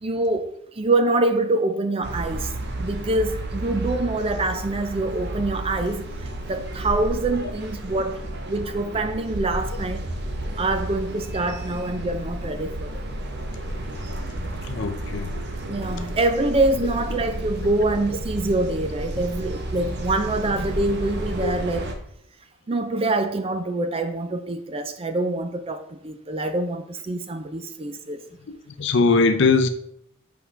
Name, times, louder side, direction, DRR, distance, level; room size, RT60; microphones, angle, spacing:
voice 1, 0.0-2.5 2.8-6.1 6.5-8.2 8.5-10.0 10.6-13.0 15.7-21.9 22.7-28.2, right 2 dB, 25° right, 0.4 m, -25 dB
sound 1, 2.0-21.9, right 1 dB, 50° right, 0.8 m, -32 dB
voice 2, 14.6-15.3 21.4-21.5 28.8-29.7, left 4 dB, 55° left, 0.5 m, -20 dB
7.9 x 4.6 x 3.3 m
head